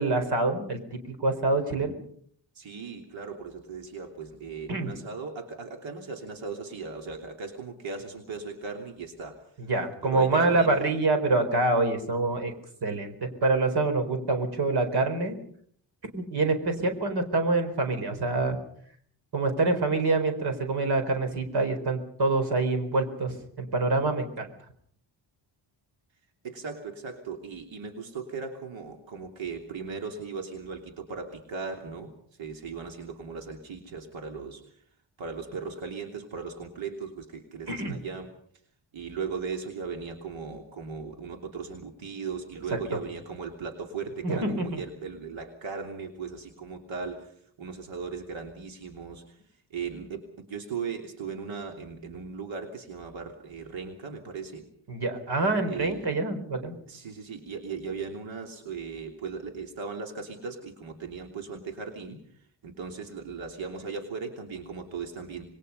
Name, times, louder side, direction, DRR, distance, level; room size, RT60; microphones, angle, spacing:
voice 1, 0.0-1.9 4.7-4.9 9.6-12.5 12.8-15.3 16.1-18.6 19.3-24.5 37.7-38.0 42.7-43.0 44.2-44.8 54.9-56.7, right 2 dB, 55° right, 7 dB, 4.5 m, -26 dB
voice 2, 2.5-9.7 10.0-10.8 26.4-34.8 35.2-38.3 38.9-54.6 55.6-56.1 56.9-65.5, right 5 dB, 80° right, 3 dB, 3.2 m, -38 dB
27.0 x 21.5 x 5.5 m, 0.63 s
wide cardioid pair, 170°, 45 cm